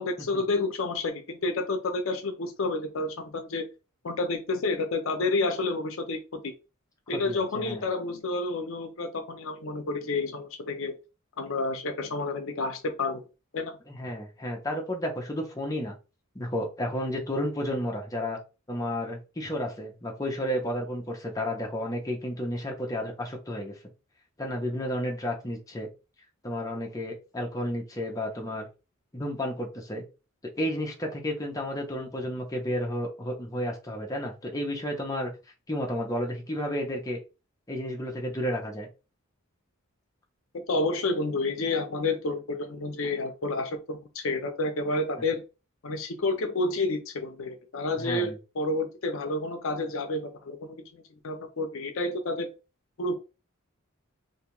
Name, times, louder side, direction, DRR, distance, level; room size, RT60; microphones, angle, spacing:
voice 1, 0.0-3.7 4.0-6.4 7.1-11.0 11.4-13.2 13.5-13.7 40.7-45.4 45.8-52.5 53.0-53.2, left 2 dB, 65° left, 6 dB, 0.6 m, -30 dB
voice 2, 7.1-7.8 13.9-15.9 16.3-18.4 18.7-23.8 24.4-25.9 26.4-28.7 29.1-30.0 30.6-35.3 35.7-37.2 37.7-38.9 45.2-45.3 48.0-48.4, equal, 15° left, 0 dB, 0.6 m, -32 dB
2.6 x 2.3 x 3.0 m, 0.30 s
head